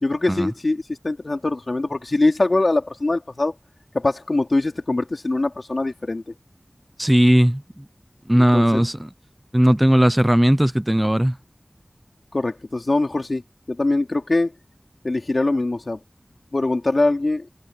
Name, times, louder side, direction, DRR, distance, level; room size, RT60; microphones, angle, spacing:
voice 1, 0.0-3.5 3.9-6.3 8.3-8.6 12.3-13.4 13.7-14.5 15.0-16.0 16.5-17.5, left 2 dB, 65° left, 3.2 m, -22 dB
voice 2, 7.0-7.6 8.3-9.1 9.5-11.4, equal, 15° right, 0.7 m, -17 dB
wide cardioid pair, 55°, 0 cm